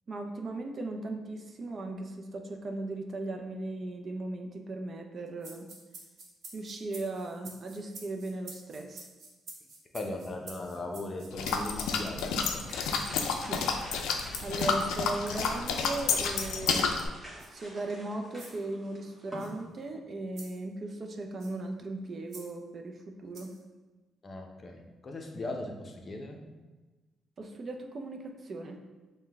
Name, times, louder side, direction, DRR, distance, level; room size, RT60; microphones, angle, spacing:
voice 1, 0.1-5.7 6.5-9.1 13.4-13.6 14.4-16.9 17.5-23.5 27.4-28.8, right 2 dB, 45° right, 4 dB, 0.5 m, -37 dB
sound 1, 5.4-13.6 14.2-14.5 15.3-15.7 16.3-16.5 17.4-17.5 18.3-18.6 19.4-19.5 20.4-20.6 21.4-21.6 22.3-22.5 23.3-23.6, right 3 dB, 65° right, 0.9 m, -48 dB
voice 2, 9.9-12.6 24.2-26.4, left 2 dB, 35° left, 2 dB, 0.6 m, -38 dB
sound 2, 11.3-17.1, left 5 dB, 90° left, 0.4 m, -30 dB
sound 3, 12.1-19.6, equal, 20° right, 1.3 m, -49 dB
5.4 x 2.2 x 3.4 m, 1.2 s
cardioid pair, 90°, 0 cm